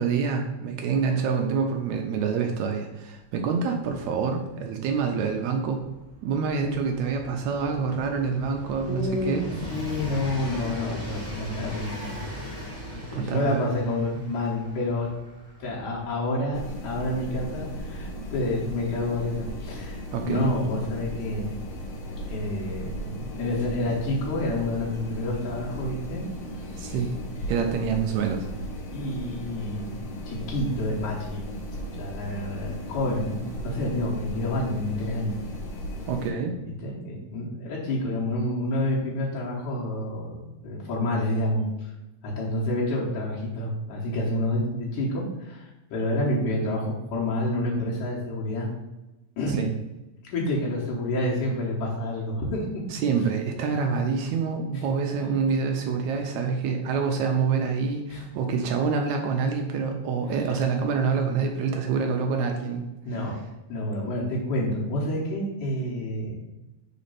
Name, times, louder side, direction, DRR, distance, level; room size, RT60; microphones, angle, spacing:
voice 1, 0.0-5.8 6.2-9.5 13.1-13.6 20.1-20.5 26.8-27.1 27.5-28.5 36.1-36.5 49.6-49.7 52.9-62.9, right 5 dB, 80° right, 3 dB, 1.7 m, -26 dB
Train, 3.4-3.5 3.6-20.3 21.2-21.3, equal, 25° left, 0.8 m, -40 dB
voice 2, 8.9-12.2 12.9-15.1 15.6-21.5 22.3-26.3 26.6-27.0 28.9-30.0 30.3-31.4 32.0-35.3 36.8-41.9 42.2-48.7 49.4-49.7 50.3-52.7 58.1-58.2 63.1-63.3 63.7-66.4, left 1 dB, 80° left, -5 dB, 2.7 m, -29 dB
sound 1, 16.5-36.3, equal, 60° left, 2.0 m, -36 dB
5.1 x 4.2 x 5.5 m, 1.0 s
omnidirectional pair, 3.6 m